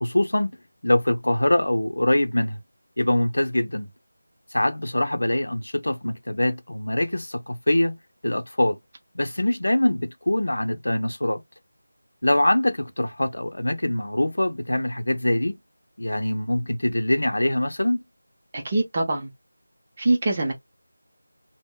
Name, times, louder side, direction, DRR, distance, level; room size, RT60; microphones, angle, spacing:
voice 1, 0.0-0.6 0.8-2.6 3.0-3.9 4.5-8.0 8.2-8.8 9.1-11.4 12.2-15.6 16.0-18.0, left 1 dB, 80° left, 0.6 m, -23 dB
voice 2, 18.5-19.3 20.0-20.5, right 2 dB, 30° right, 0.6 m, -23 dB
3.5 x 2.1 x 2.2 m
figure-of-eight pair, 170°, 0 cm